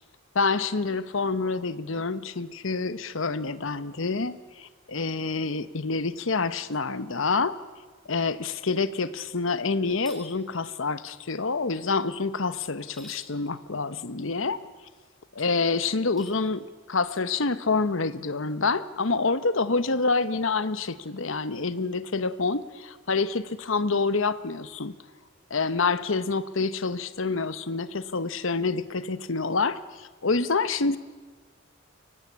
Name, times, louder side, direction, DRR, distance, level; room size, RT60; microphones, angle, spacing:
voice 1, 0.3-7.6 8.1-14.6 15.3-24.9 25.5-31.0, left 4 dB, 65° left, 13 dB, 0.9 m, -27 dB
sound 1, 9.9-10.3 12.8-13.3 16.0-16.4, left 1 dB, ahead, 3.3 m, -48 dB
23.5 x 18.0 x 8.5 m, 1.3 s
head